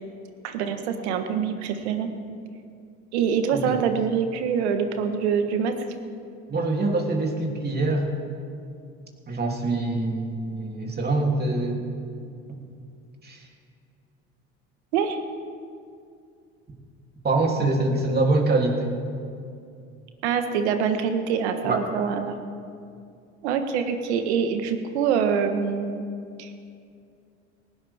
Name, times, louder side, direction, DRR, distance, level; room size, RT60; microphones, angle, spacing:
voice 1, 0.4-2.1 3.1-5.7 14.9-15.2 20.2-22.4 23.4-26.0 26.4-26.5, right 7 dB, 90° right, 7 dB, 1.4 m, -25 dB
voice 2, 6.5-8.1 9.3-11.8 12.5-12.6 13.2-13.4 17.2-18.9 21.6-21.8, right 2 dB, 30° right, 0 dB, 3.0 m, -24 dB
19.0 x 17.0 x 3.6 m, 2.4 s
supercardioid pair, 80°, 32 cm